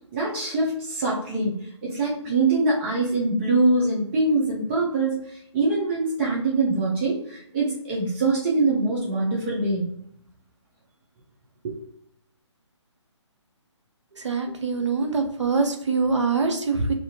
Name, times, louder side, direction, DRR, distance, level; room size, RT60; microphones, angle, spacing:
voice 1, 0.1-9.9 11.6-11.8, right 2 dB, 20° right, -5 dB, 0.6 m, -24 dB
voice 2, 14.2-16.9, right 4 dB, 75° right, 5 dB, 0.6 m, -24 dB
2.8 x 2.5 x 2.8 m, 0.71 s
figure-of-eight pair, 140°, 16 cm